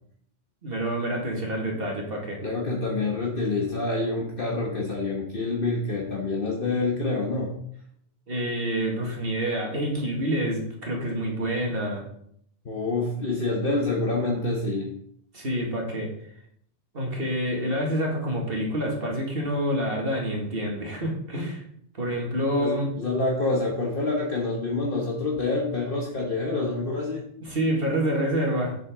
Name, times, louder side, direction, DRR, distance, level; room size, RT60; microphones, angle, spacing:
voice 1, 0.6-2.4 8.3-12.0 15.3-16.1 16.9-21.6 21.9-22.9 27.4-28.8, right 1 dB, 55° right, 0 dB, 2.2 m, -27 dB
voice 2, 2.4-7.5 12.6-14.9 22.6-27.2, left 3 dB, 50° left, -1 dB, 1.4 m, -27 dB
7.8 x 7.6 x 3.8 m, 0.67 s
omnidirectional pair, 1.2 m